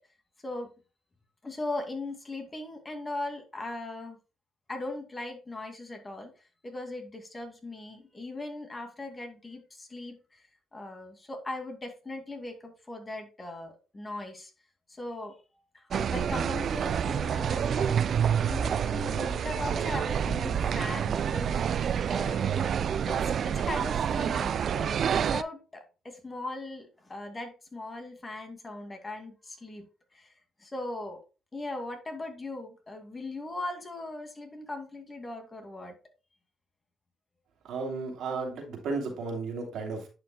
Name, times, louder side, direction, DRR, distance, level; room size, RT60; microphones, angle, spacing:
voice 1, 1.4-4.2 4.7-6.3 6.6-10.5 10.7-14.5 14.9-15.4 15.7-18.0 18.3-22.6 23.1-29.9 30.1-30.3 30.6-31.2 31.5-35.9, left 2 dB, 25° left, 4 dB, 2.3 m, -39 dB
sound 1, 15.9-25.4, right 8 dB, 60° right, 0.3 m, -28 dB
voice 2, 37.7-40.1, right 4 dB, 75° right, 2 dB, 2.9 m, -34 dB
11.0 x 5.7 x 2.2 m, 0.31 s
cardioid pair, 90°, 0 cm